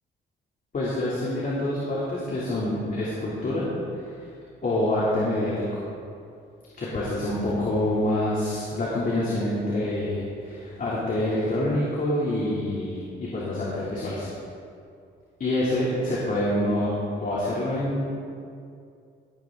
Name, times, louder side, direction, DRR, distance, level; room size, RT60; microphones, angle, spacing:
voice 1, 0.7-3.7 3.9-4.2 4.6-5.8 6.8-14.3 15.4-16.9 17.2-18.1, left 1 dB, 45° left, -7 dB, 2.7 m, -26 dB
17.0 x 9.0 x 3.8 m, 2.4 s
cardioid pair, 90°, 20 cm